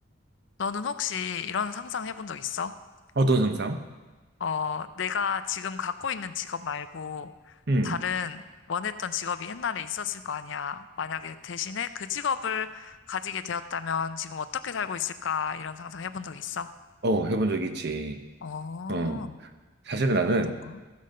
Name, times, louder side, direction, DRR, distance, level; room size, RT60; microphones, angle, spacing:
voice 1, 0.6-2.7 4.4-7.6 7.8-8.4 8.7-16.7 18.4-19.4 20.5-20.8, left 6 dB, 65° left, 12 dB, 0.5 m, -32 dB
voice 2, 3.2-3.8 7.7-8.0 17.0-18.2 18.9-19.2 19.9-20.5, right 2 dB, 55° right, 7 dB, 0.8 m, -25 dB
14.0 x 5.2 x 6.5 m, 1.2 s
head